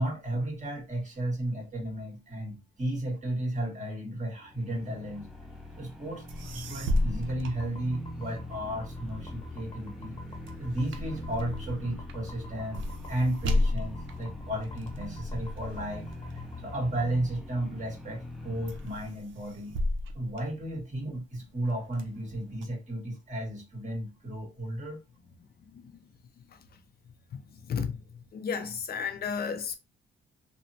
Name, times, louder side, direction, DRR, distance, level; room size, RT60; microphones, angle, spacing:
voice 1, 0.0-5.3 5.8-10.2 10.6-16.1 16.6-19.8 20.1-25.0, right 1 dB, 40° right, 1.6 m, -34 dB
sound 1, 4.4-19.2, left 1 dB, ahead, 0.6 m, -43 dB
sound 2, 6.3-8.4 8.8-17.5 18.0-18.4 18.7-21.2 21.6-22.6, left 1 dB, 75° right, 0.5 m, -34 dB
sound 3, 7.5-17.1, left 3 dB, 20° left, 0.9 m, -46 dB
voice 2, 28.3-29.7, left 6 dB, 50° left, 0.5 m, -32 dB
2.9 x 2.0 x 2.7 m
cardioid pair, 90°, 20 cm